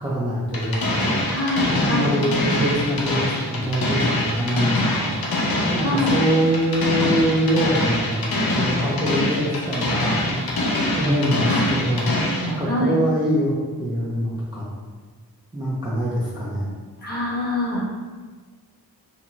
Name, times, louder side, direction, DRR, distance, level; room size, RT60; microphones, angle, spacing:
voice 1, 0.0-1.3 1.6-3.2 3.5-5.4 5.6-13.5 13.8-14.6 15.5-16.7, equal, 10° right, -8 dB, 0.5 m, -24 dB
sound 1, 0.5-12.5, left 1 dB, 65° left, 0.7 m, -24 dB
voice 2, 1.3-2.2 5.8-6.1 11.4-11.7 12.6-12.9 17.0-17.9, left 1 dB, 25° left, -7 dB, 1.0 m, -24 dB
2.6 x 2.2 x 2.9 m, 1.4 s
cardioid pair, 55°, 40 cm